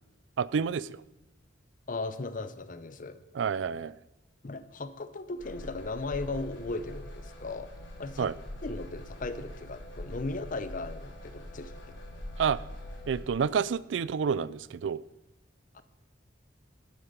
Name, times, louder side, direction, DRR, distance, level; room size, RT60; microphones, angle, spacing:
voice 1, 0.4-0.9 3.3-4.0 8.2-8.3 12.4-12.6 13.1-15.0, right 6 dB, 75° right, 0.4 m, -29 dB
voice 2, 1.9-3.2 4.4-7.7 8.0-8.3 8.6-11.8 15.7-15.8, left 3 dB, 45° left, 0.7 m, -37 dB
sound 1, 5.4-13.2, left 1 dB, 75° left, 3.7 m, -43 dB
11.5 x 8.6 x 5.4 m
head